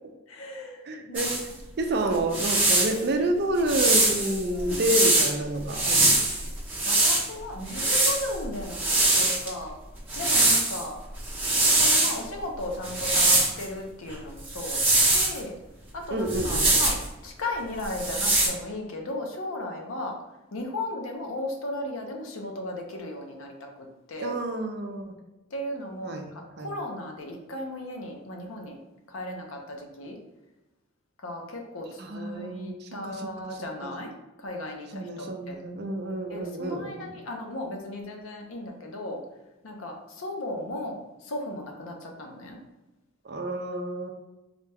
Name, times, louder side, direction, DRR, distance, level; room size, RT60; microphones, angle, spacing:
voice 1, 0.3-0.8 1.1-1.3 4.5-4.9 6.5-6.6 6.9-9.8 10.2-11.0 11.7-15.5 15.9-17.0 17.2-20.2 20.5-24.3 25.5-28.8 29.1-30.2 31.2-34.1 34.4-39.2 39.6-42.6, left 1 dB, 80° left, 2 dB, 0.7 m, -36 dB
voice 2, 0.9-1.3 1.8-6.1 16.1-16.7 24.2-25.1 26.0-26.7 32.0-33.9 34.9-37.1 43.2-44.1, right 1 dB, 50° right, 4 dB, 0.4 m, -29 dB
sound 1, 1.1-1.4 2.1-3.0 3.7-5.3 5.7-7.2 7.7-9.5 10.1-10.8 11.2-12.2 12.8-13.6 14.5-15.4 16.3-17.0 17.8-18.5, right 2 dB, 10° right, 0.8 m, -23 dB
3.9 x 2.2 x 3.3 m, 1.0 s
head